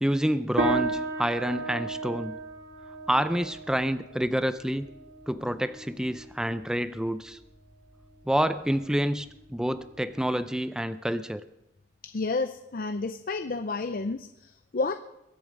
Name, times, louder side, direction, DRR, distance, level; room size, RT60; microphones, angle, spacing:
voice 1, 0.0-2.4 3.1-4.9 5.3-7.4 8.3-11.4, equal, 5° right, 12 dB, 0.4 m, -28 dB
sound 1, 0.6-10.2, right 3 dB, 80° right, 2.5 m, -35 dB
voice 2, 12.0-14.9, left 3 dB, 50° left, 9 dB, 0.5 m, -31 dB
22.5 x 8.1 x 5.2 m, 0.89 s
head